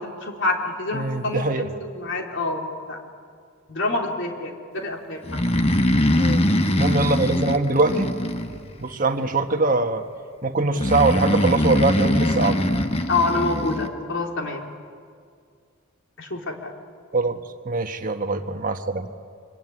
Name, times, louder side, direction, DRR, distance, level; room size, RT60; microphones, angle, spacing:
voice 1, 0.0-1.7 1.9-3.0 3.7-5.2 13.1-14.6 16.2-16.7, left 3 dB, 60° left, 1 dB, 3.7 m, -27 dB
voice 2, 0.9-1.6 6.2-6.5 6.8-8.1 8.8-10.1 10.4-12.6 17.1-19.1, right 3 dB, 40° right, 6 dB, 1.4 m, -23 dB
Breathing, 5.2-9.0 10.8-13.9, left 1 dB, 30° left, 1.4 m, -22 dB
25.5 x 24.0 x 9.8 m, 2.2 s
head